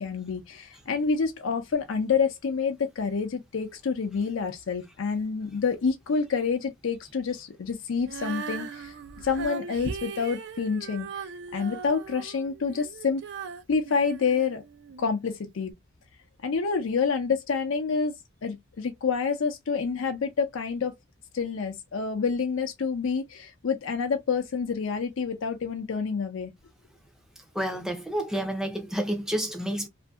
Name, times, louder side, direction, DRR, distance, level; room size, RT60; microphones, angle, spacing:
voice 1, 0.0-11.1 11.5-13.2 13.7-14.6 15.0-15.7 16.4-18.1 18.4-20.9 21.3-26.5, left 5 dB, 70° left, 0.5 m, -28 dB
Female singing, 8.0-15.1 15.7-15.8, right 5 dB, 55° right, 0.4 m, -39 dB
voice 2, 27.5-29.9, right 1 dB, 5° right, 0.5 m, -29 dB
2.6 x 2.5 x 2.3 m
head